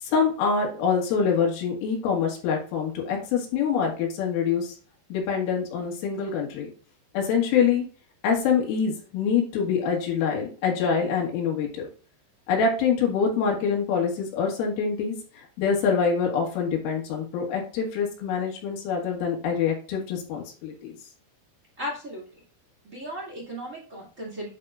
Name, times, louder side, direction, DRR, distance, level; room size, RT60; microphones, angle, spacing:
voice 1, 0.0-4.7 5.1-6.7 7.1-7.8 8.2-11.9 12.5-15.2 15.6-20.9, left 6 dB, 90° left, -1 dB, 4.5 m, -25 dB
voice 2, 21.8-22.2 22.8-24.5, equal, 35° right, -4 dB, 1.2 m, -35 dB
10.5 x 4.7 x 2.5 m, 0.40 s
omnidirectional pair, 5.6 m